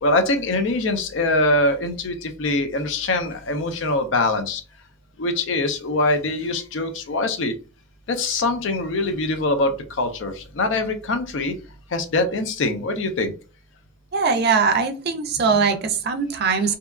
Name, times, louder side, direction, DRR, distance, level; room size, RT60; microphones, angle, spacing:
voice 1, 0.0-4.6 5.2-7.5 8.1-11.6 11.9-13.3, left 2 dB, 70° left, 0.5 m, -23 dB
voice 2, 14.1-16.8, right 5 dB, 55° right, 0.4 m, -21 dB
2.7 x 2.2 x 2.3 m
head